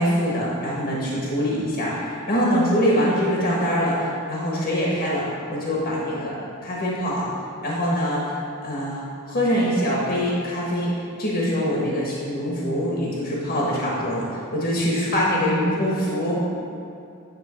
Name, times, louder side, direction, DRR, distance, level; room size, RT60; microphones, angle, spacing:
voice 1, 0.0-7.3 7.6-8.3 8.6-16.5, equal, 45° left, -5 dB, 1.3 m, -24 dB
9.6 x 3.7 x 5.7 m, 2.6 s
head